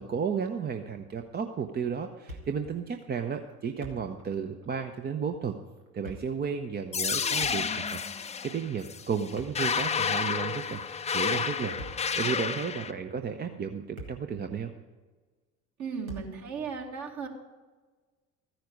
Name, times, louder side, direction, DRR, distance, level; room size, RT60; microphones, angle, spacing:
voice 1, 0.0-5.6 5.9-14.7, right 6 dB, 25° right, 6 dB, 0.8 m, -33 dB
Thump thud, 2.3-2.8 3.0-3.1 3.6-4.3 4.6-4.8 5.8-6.4 7.3-8.0 9.2-10.1 11.6-12.2 12.9-13.1 13.6-14.4 14.7-14.8 16.1-16.5, right 1 dB, 85° right, 1.8 m, -45 dB
sound 1, 6.9-12.9, left 6 dB, 15° left, 0.6 m, -30 dB
voice 2, 15.8-17.3, right 6 dB, 45° right, 2 dB, 2.1 m, -36 dB
14.0 x 10.5 x 5.1 m, 1.3 s
figure-of-eight pair, 60°, 41 cm